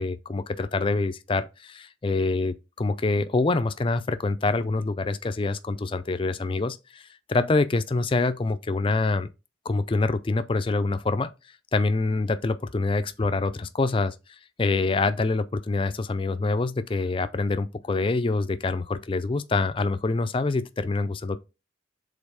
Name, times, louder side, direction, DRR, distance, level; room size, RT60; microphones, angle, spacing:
voice 1, 0.0-9.3 9.7-11.3 11.7-14.1 14.6-21.4, left 3 dB, 25° left, 0.4 m, -26 dB
5.3 x 4.0 x 4.8 m
head